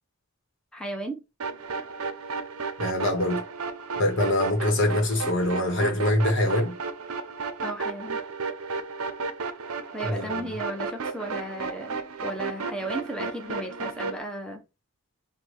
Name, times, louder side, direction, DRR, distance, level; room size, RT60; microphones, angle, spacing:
voice 1, 0.7-1.2 7.6-8.2 9.9-14.6, right 1 dB, 5° left, 0.6 m, -35 dB
sound 1, 1.4-14.2, right 4 dB, 80° right, 0.6 m, -33 dB
voice 2, 2.8-3.4 4.0-6.8 10.0-10.5, left 1 dB, 55° left, 1.1 m, -24 dB
5.7 x 2.2 x 3.2 m
head